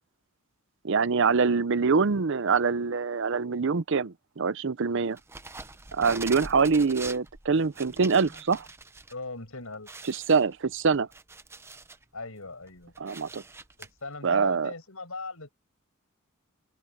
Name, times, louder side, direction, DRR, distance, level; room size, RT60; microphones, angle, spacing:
voice 1, 0.8-5.2 5.9-8.7 10.1-11.1 13.0-13.4 14.2-14.7, right 5 dB, 60° right, 0.6 m, -24 dB
sound 1, 5.2-9.1 9.5-9.6 9.9-12.0 12.5-13.9, right 3 dB, 10° right, 0.6 m, -43 dB
voice 2, 9.1-10.0 12.1-12.9 13.8-15.5, left 3 dB, 75° left, 6.5 m, -39 dB
open air
head